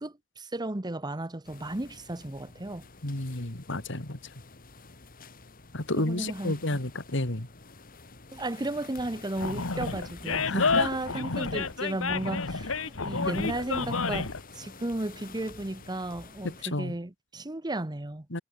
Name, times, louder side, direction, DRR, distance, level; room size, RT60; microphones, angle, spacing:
voice 1, 0.0-2.9 5.9-6.8 8.3-18.3, right 1 dB, 20° right, 1.0 m, -34 dB
sound 1, 1.4-16.6, left 3 dB, 45° left, 2.3 m, -49 dB
voice 2, 3.0-4.3 5.7-7.5 10.5-10.9 16.4-16.9 18.3-18.4, left 2 dB, 65° left, 2.9 m, -31 dB
Animal, 9.4-14.4, left 4 dB, 90° left, 1.8 m, -29 dB
head